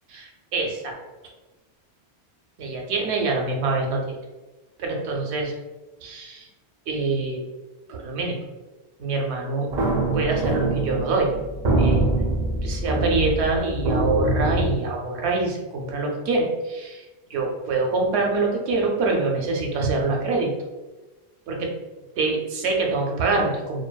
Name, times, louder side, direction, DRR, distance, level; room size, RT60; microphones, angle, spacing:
voice 1, 0.1-1.0 2.6-4.2 4.8-5.5 6.0-6.5 6.9-7.4 7.9-8.4 9.0-9.7 10.1-11.3 11.8-12.3 12.6-17.1 17.3-20.5 21.5-21.7 22.2-23.8, right 3 dB, 85° right, 0 dB, 0.8 m, -25 dB
sound 1, 9.7-14.8, right 2 dB, 55° right, 0.6 m, -24 dB
2.6 x 2.2 x 2.2 m, 1.2 s
omnidirectional pair, 1.1 m